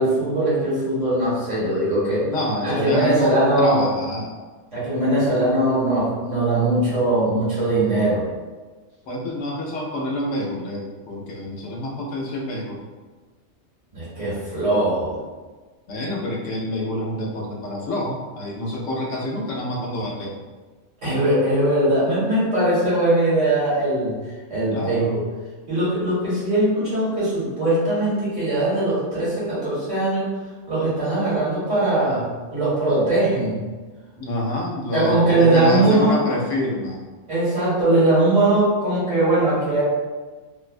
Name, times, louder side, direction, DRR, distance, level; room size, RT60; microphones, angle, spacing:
voice 1, 0.0-2.3 2.6-3.9 4.7-8.2 13.9-15.2 21.0-24.2 24.5-25.2 25.7-30.3 30.7-33.6 34.9-36.2 37.3-39.8, right 1 dB, 75° right, -10 dB, 2.1 m, -20 dB
voice 2, 2.2-4.3 9.1-12.8 15.9-20.4 24.7-25.1 34.2-37.0, left 1 dB, 85° left, -2 dB, 1.1 m, -27 dB
3.9 x 2.1 x 2.4 m, 1.3 s
omnidirectional pair, 1.3 m